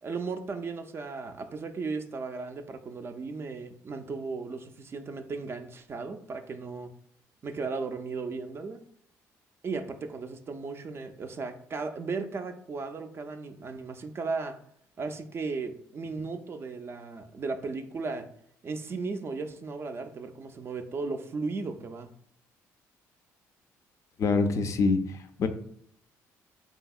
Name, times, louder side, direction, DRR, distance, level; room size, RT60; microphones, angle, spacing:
voice 1, 0.0-6.9 7.4-8.8 9.6-14.6 15.0-18.3 18.6-22.1, right 4 dB, 35° right, 7 dB, 0.3 m, -36 dB
voice 2, 24.2-25.5, left 4 dB, 50° left, 8 dB, 0.3 m, -25 dB
2.8 x 2.7 x 2.3 m, 0.68 s
supercardioid pair, 75°, 7 cm